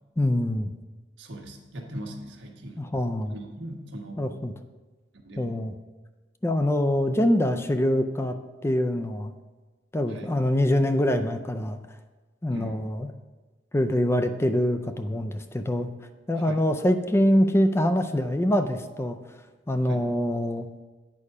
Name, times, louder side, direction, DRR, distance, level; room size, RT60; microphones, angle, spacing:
voice 1, 0.2-0.7 2.8-3.3 4.2-4.5 5.4-5.7 6.4-8.4 8.6-9.3 9.9-11.8 12.4-13.1 13.7-15.9 16.3-19.2 19.7-20.7, left 1 dB, 15° left, 8 dB, 0.4 m, -24 dB
voice 2, 1.2-2.9 3.3-4.3 5.1-5.5 10.1-10.3 12.5-12.8 16.4-16.6 19.9-20.0, right 1 dB, 90° right, 1 dB, 1.3 m, -40 dB
8.5 x 4.9 x 5.4 m, 1.3 s
head